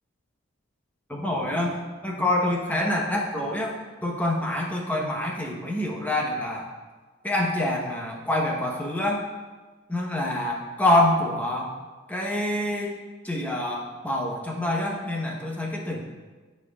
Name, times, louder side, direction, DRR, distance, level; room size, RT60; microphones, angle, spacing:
voice 1, 1.1-1.8 2.0-3.7 4.0-6.7 7.2-9.2 9.9-11.7 12.1-13.0 13.2-16.1, left 1 dB, 10° left, -1 dB, 0.9 m, -26 dB
13.0 x 4.5 x 2.4 m, 1.3 s
head